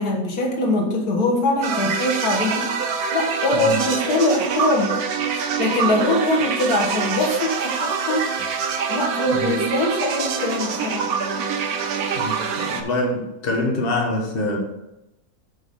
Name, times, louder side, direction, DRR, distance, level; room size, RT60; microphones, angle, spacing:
voice 1, 0.0-2.7 3.1-5.0 5.2-8.3 8.9-11.1, left 2 dB, 70° left, 0 dB, 1.9 m, -22 dB
sound 1, 1.6-12.8, right 6 dB, 70° right, 1.3 m, -25 dB
voice 2, 3.5-3.8 9.3-9.6 12.2-14.6, left 2 dB, 40° left, 0 dB, 1.6 m, -25 dB
8.0 x 5.2 x 5.4 m, 0.93 s
omnidirectional pair, 1.7 m